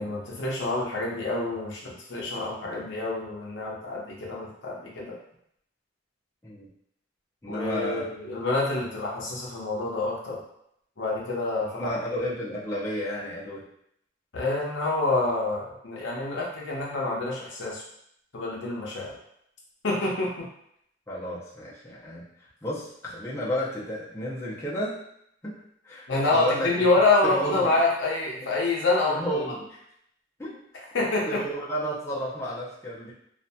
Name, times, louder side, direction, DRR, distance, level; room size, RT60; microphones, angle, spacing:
voice 1, 0.0-5.1 7.5-10.4 11.0-11.9 14.3-17.8 18.3-19.1 19.8-20.5 26.1-29.4 30.9-31.4, left 2 dB, 75° left, -3 dB, 0.7 m, -27 dB
voice 2, 7.4-8.1 11.6-13.6 21.1-25.0 25.4-25.5 25.8-26.9 27.2-27.7 28.4-28.5 29.1-29.8 30.4-30.6 31.3-33.1, equal, 15° left, -8 dB, 0.6 m, -32 dB
2.7 x 2.4 x 2.2 m, 0.73 s
head